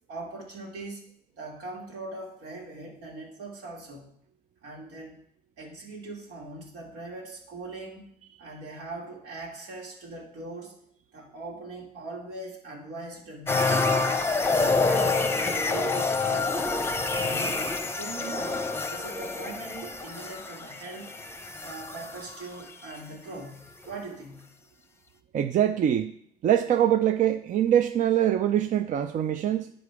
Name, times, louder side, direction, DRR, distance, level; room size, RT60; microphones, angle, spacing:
voice 1, 0.1-1.0 1.4-4.1 4.6-5.2 5.6-10.8 11.1-14.1 14.5-16.8 17.1-21.2 21.6-24.5, right 2 dB, 85° right, 2.8 m, -41 dB
sound 1, 13.5-22.6 23.0-23.1, left 3 dB, 15° left, 0.7 m, -27 dB
voice 2, 25.3-26.1 26.4-29.7, right 10 dB, 50° right, 0.5 m, -23 dB
10.5 x 5.0 x 4.8 m
cardioid pair, 110°, 17 cm